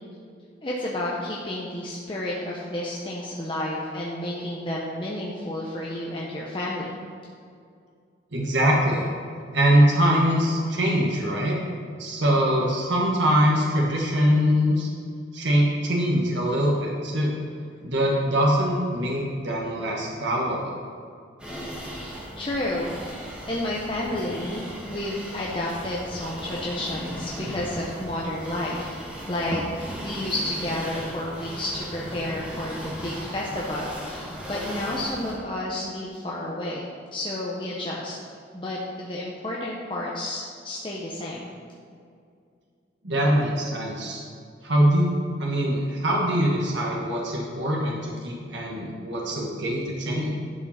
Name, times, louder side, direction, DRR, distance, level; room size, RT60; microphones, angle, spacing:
voice 1, 0.6-6.9 22.0-29.0 29.3-36.8 37.1-38.1 38.5-41.5, left 1 dB, 25° left, -5 dB, 0.9 m, -31 dB
voice 2, 8.3-9.1 9.5-11.6 12.0-14.9 15.3-17.3 17.8-20.8 43.0-44.2 44.6-45.1 45.4-50.4, equal, 70° right, -2 dB, 1.4 m, -23 dB
sound 1, 21.4-35.3, equal, 5° right, 1.6 m, -37 dB
11.5 x 5.2 x 5.7 m, 2.3 s
head